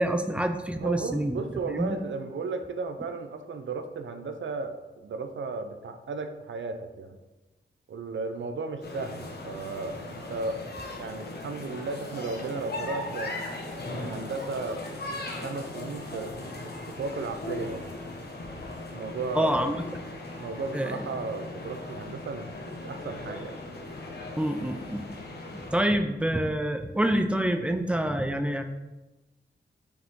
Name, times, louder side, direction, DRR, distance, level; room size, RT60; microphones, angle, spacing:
voice 1, 0.0-1.4 1.8-2.0 19.3-19.8 20.7-21.1 24.4-25.0 25.7-28.6, right 1 dB, 5° right, 7 dB, 0.5 m, -26 dB
voice 2, 0.7-7.2 7.9-10.6 10.9-13.4 13.9-17.9 18.9-19.8 20.4-23.6 25.9-26.0, right 4 dB, 80° right, 8 dB, 0.6 m, -35 dB
sound 1, 8.8-25.7, left 2 dB, 55° left, 1.2 m, -38 dB
6.3 x 5.0 x 3.7 m, 1.1 s
wide cardioid pair, 135°, 19 cm